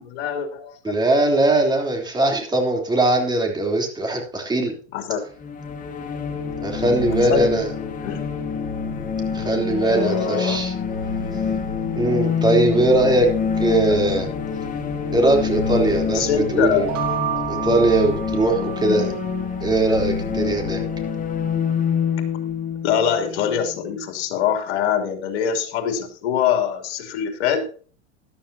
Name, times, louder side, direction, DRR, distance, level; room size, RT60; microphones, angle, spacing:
voice 1, 0.0-0.7 4.9-5.2 7.1-7.5 8.0-8.3 9.8-10.7 12.9-13.2 13.9-14.0 16.1-17.0 18.8-19.1 22.8-27.7, left 8 dB, 65° left, 4 dB, 3.1 m, -24 dB
voice 2, 0.8-4.7 6.6-7.7 9.3-10.7 11.9-13.3 13.6-14.3 15.1-16.9 17.5-19.1 19.6-20.8, right 2 dB, 10° right, 2 dB, 3.4 m, -20 dB
sound 1, 5.4-24.0, left 6 dB, 25° left, 1.8 m, -26 dB
sound 2, 16.7-19.5, right 12 dB, 45° right, 2.7 m, -30 dB
13.5 x 11.5 x 2.8 m, 0.41 s
hypercardioid pair, 115°, 34 cm